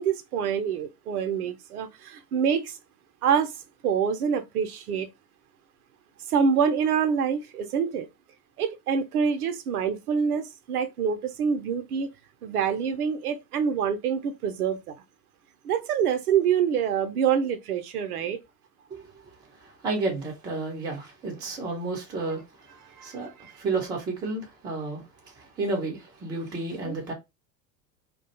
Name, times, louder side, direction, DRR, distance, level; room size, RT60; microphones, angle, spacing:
voice 1, 0.0-2.8 3.2-3.5 3.8-5.1 6.3-8.1 8.6-12.1 12.4-14.9 15.6-18.4 23.0-23.5 26.9-27.0, right 7 dB, 65° right, 0.5 m, -26 dB
voice 2, 18.9-19.3 19.6-22.7 23.0-27.1, right 3 dB, 10° right, 0.4 m, -32 dB
2.3 x 2.1 x 2.7 m
figure-of-eight pair, 80°, 49 cm